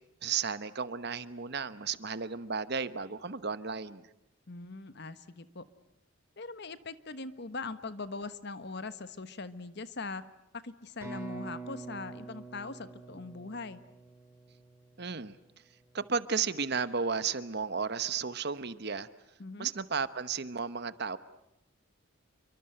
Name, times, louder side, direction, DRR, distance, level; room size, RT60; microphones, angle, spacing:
voice 1, 0.2-4.1 15.0-15.4 15.9-19.1 19.6-21.2, right 5 dB, 50° right, 13 dB, 1.1 m, -33 dB
voice 2, 4.5-5.7 6.4-10.2 10.5-13.8 19.4-19.7, left 3 dB, 55° left, 13 dB, 1.3 m, -41 dB
sound 1, 11.0-14.8, right 3 dB, 10° right, 6.3 m, -45 dB
29.0 x 24.0 x 7.9 m, 0.81 s
head